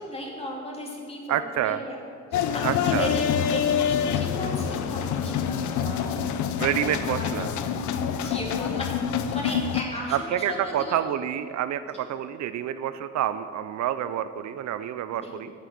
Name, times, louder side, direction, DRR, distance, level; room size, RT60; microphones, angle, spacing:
voice 1, 0.0-2.0 2.3-6.7 7.0-7.3 8.1-8.9 9.3-11.0 15.2-15.3, left 1 dB, 20° left, -2 dB, 2.5 m, -36 dB
voice 2, 1.3-1.8 2.6-3.1 6.6-7.5 10.1-15.5, right 11 dB, 65° right, 12 dB, 0.5 m, -28 dB
sound 1, 2.3-9.8, left 8 dB, 75° left, 0.7 m, -26 dB
8.7 x 7.5 x 6.8 m, 2.4 s
cardioid pair, 90°, 30 cm